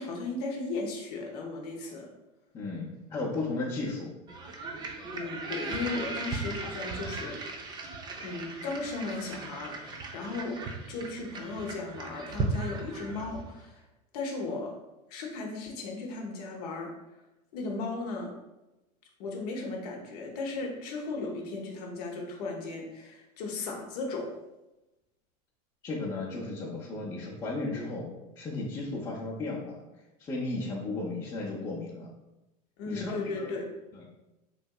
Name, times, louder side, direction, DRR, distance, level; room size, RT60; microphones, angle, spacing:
voice 1, 0.0-2.1 5.1-7.8 8.2-10.6 10.9-13.8 14.1-14.7 15.1-16.9 17.5-18.3 19.2-24.3 32.8-33.7, left 3 dB, 70° left, 0 dB, 0.7 m, -36 dB
voice 2, 2.5-4.1 25.8-29.8 30.2-32.1 32.9-33.5, left 2 dB, 20° left, -7 dB, 0.6 m, -34 dB
sound 1, 4.3-13.6, right 3 dB, 20° right, 0.4 m, -37 dB
3.1 x 2.6 x 2.2 m, 0.98 s
hypercardioid pair, 105°, 21 cm